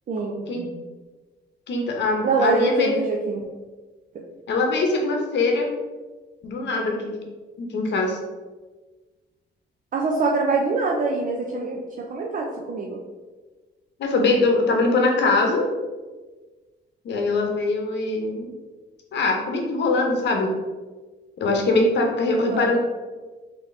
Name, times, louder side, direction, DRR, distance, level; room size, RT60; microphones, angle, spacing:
voice 1, 0.1-0.8 2.2-3.4 4.1-4.2 9.9-13.0 22.3-22.8, right 3 dB, 45° right, -1 dB, 0.5 m, -25 dB
voice 2, 1.7-3.0 4.5-5.7 6.4-7.2 7.6-8.2 14.0-15.7 17.0-18.5 19.1-20.5 21.4-22.8, left 3 dB, 60° left, 2 dB, 0.9 m, -22 dB
3.9 x 2.8 x 3.2 m, 1.3 s
cardioid pair, 90°, 20 cm